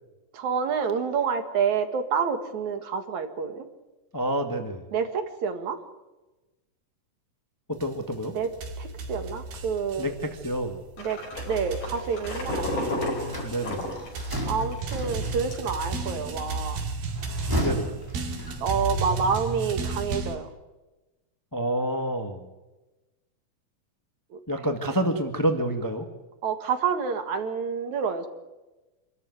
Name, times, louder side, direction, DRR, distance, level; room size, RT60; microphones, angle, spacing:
voice 1, 0.3-3.6 4.9-5.8 8.3-8.5 8.8-10.1 11.0-11.2 11.5-13.0 14.5-16.8 18.6-20.5 24.3-24.4 26.4-28.3, right 6 dB, 60° right, 8 dB, 3.0 m, -28 dB
voice 2, 4.1-4.8 7.7-8.3 10.0-10.8 12.9-13.9 17.6-18.0 21.5-22.4 24.5-26.1, right 1 dB, 30° left, 6 dB, 0.3 m, -28 dB
sound 1, 7.8-20.4, right 3 dB, 90° right, 4.2 m, -34 dB
sound 2, 11.0-14.8 15.1-15.2 15.5-16.0, left 2 dB, 65° left, 6.5 m, -32 dB
sound 3, 13.2-15.8 17.1-18.9, right 1 dB, 5° right, 4.7 m, -33 dB
26.5 x 14.0 x 9.5 m, 1.1 s
omnidirectional pair, 4.0 m